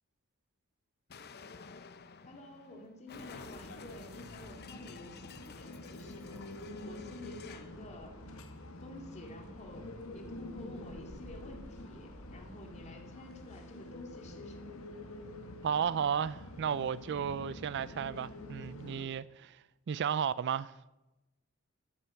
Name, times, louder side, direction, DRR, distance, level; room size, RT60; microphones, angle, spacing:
Explosion, 1.1-7.8, left 5 dB, 50° left, 0.7 m, -52 dB
voice 1, 2.3-6.4 6.8-8.2 8.8-14.7, left 1 dB, 35° left, 2.4 m, -51 dB
sound 1, 3.3-19.1, left 2 dB, 90° left, 1.6 m, -47 dB
voice 2, 15.6-19.6 19.9-20.7, right 7 dB, 55° right, 0.4 m, -33 dB
13.0 x 12.0 x 5.8 m
head